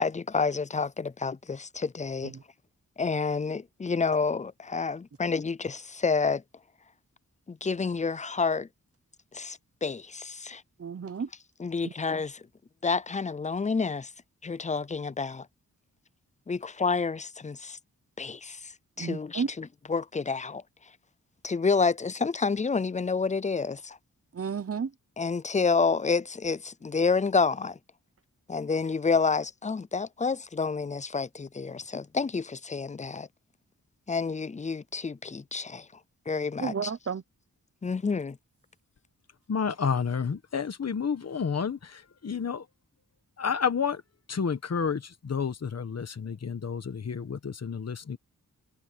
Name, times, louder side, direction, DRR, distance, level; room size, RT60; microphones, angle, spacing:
voice 1, 0.0-2.3 3.0-6.4 7.5-8.7 9.3-10.6 11.6-12.4 12.8-14.1 14.4-15.5 16.5-17.8 18.2-18.7 19.0-20.6 21.4-24.0 25.2-27.8 28.5-33.3 34.1-35.9 36.3-36.9 37.8-38.4, left 4 dB, 20° left, 0.5 m, -29 dB
voice 2, 10.8-11.3 19.0-19.5 24.4-24.9 36.6-37.2, right 6 dB, 45° right, 0.9 m, -31 dB
voice 3, 39.5-42.6 43.4-44.0 44.3-48.2, left 6 dB, 50° left, 1.3 m, -30 dB
wide cardioid pair, 95°, 33 cm